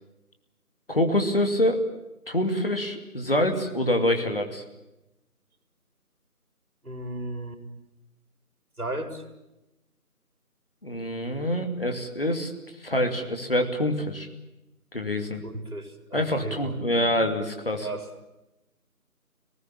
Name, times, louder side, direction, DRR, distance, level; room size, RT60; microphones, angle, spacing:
voice 1, 0.9-1.8 2.3-4.6 10.8-12.5 12.8-14.3 14.9-15.4 16.1-17.9, left 1 dB, 40° left, 5 dB, 2.5 m, -25 dB
voice 2, 6.8-7.6 8.8-9.2 15.4-17.2 17.8-18.1, right 1 dB, 70° right, 7 dB, 4.5 m, -35 dB
25.5 x 19.0 x 8.8 m, 0.94 s
figure-of-eight pair, 175°, 46 cm